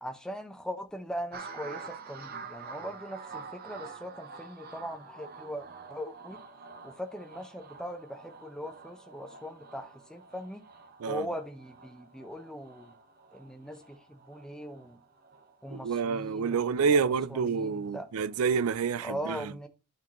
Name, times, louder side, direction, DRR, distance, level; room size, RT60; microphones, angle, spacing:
voice 1, 0.0-6.4 6.8-10.6 11.1-12.9 13.3-15.0 15.6-17.0 17.3-18.1 19.0-19.7, equal, 5° left, 0.8 m, -40 dB
sound 1, 1.3-17.9 18.3-18.7, right 5 dB, 45° right, 0.8 m, -48 dB
voice 2, 15.7-19.5, right 5 dB, 80° right, 0.4 m, -28 dB
12.0 x 4.4 x 3.0 m
head